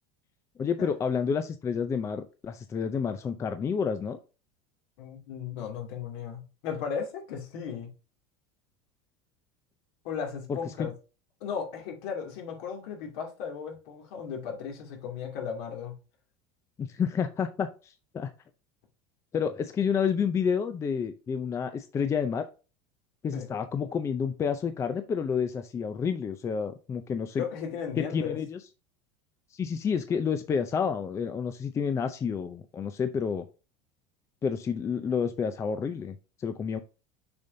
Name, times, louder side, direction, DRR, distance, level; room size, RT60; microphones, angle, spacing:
voice 1, 0.6-4.2 10.5-10.9 16.8-18.3 19.3-22.5 23.2-27.4 28.0-28.6 29.5-33.4 34.4-36.8, left 6 dB, 20° left, 0.5 m, -29 dB
voice 2, 5.0-7.9 10.0-10.9 11.4-15.9 23.3-23.5 27.4-28.4, left 7 dB, 65° left, 2.5 m, -36 dB
6.8 x 5.3 x 2.7 m
supercardioid pair, 140°, 14 cm